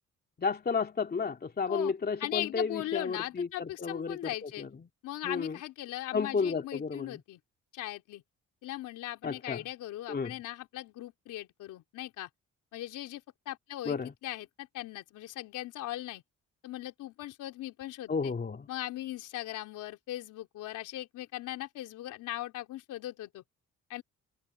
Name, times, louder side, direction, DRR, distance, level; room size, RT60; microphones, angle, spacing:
voice 1, 0.4-4.2 4.6-4.7 5.2-5.6 6.1-7.2 9.2-9.6 10.1-10.3 13.9-14.1 18.1-18.7, left 5 dB, 30° left, 2.4 m, -32 dB
voice 2, 2.2-4.7 5.0-7.4 7.7-8.2 8.6-12.3 12.7-16.2 16.6-18.3 18.7-23.4 23.9-24.0, left 14 dB, 90° left, 3.6 m, -39 dB
cardioid pair, 90°, 30 cm